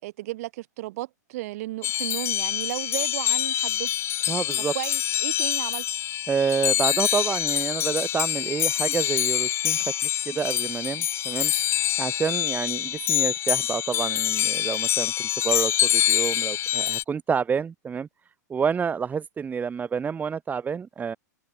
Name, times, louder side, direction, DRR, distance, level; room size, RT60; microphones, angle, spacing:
voice 1, 0.0-3.9 4.2-5.9, right 18 dB, 55° right, 7.7 m, -34 dB
sound 1, 1.8-17.0, left 12 dB, 25° left, 0.6 m, -25 dB
voice 2, 4.3-4.7 6.3-9.9 10.3-11.5 12.0-18.1 18.5-21.2, right 6 dB, 15° right, 2.0 m, -28 dB
hypercardioid pair, 110°, 10 cm